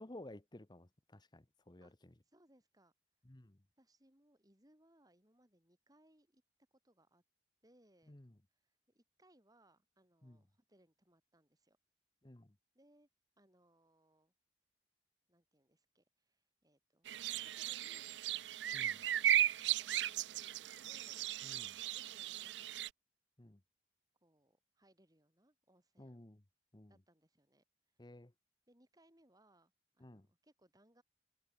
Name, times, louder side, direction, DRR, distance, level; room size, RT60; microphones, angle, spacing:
voice 1, 0.0-2.1 3.2-3.6 8.1-8.4 10.2-10.4 12.2-12.5 18.7-19.0 21.4-21.7 23.4-23.6 26.0-26.4 26.7-27.0 28.0-28.3 30.0-30.3, left 1 dB, 25° left, 1.0 m, -55 dB
voice 2, 2.2-2.9 3.8-6.4 6.8-7.2 7.6-8.2 8.6-11.8 12.7-13.1 13.4-14.3 15.3-18.3 19.8-21.3 21.6-22.8 24.2-26.2 26.9-27.6 28.7-31.0, right 1 dB, 20° right, 7.4 m, -70 dB
sound 1, 17.1-22.9, right 12 dB, 80° right, 0.4 m, -36 dB
head